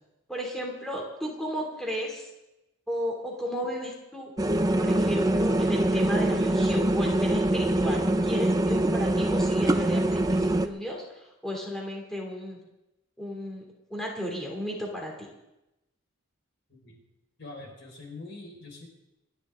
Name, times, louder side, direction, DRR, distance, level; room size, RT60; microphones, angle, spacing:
voice 1, 0.3-2.3 2.9-4.3 4.8-12.6 13.2-13.6 13.9-15.1, equal, ahead, -1 dB, 2.9 m, -34 dB
sound 1, 4.4-10.7, right 1 dB, 15° right, 0.6 m, -24 dB
voice 2, 16.7-17.0 17.4-18.9, left 2 dB, 55° left, 0 dB, 5.2 m, -44 dB
28.5 x 10.5 x 3.8 m, 0.94 s
head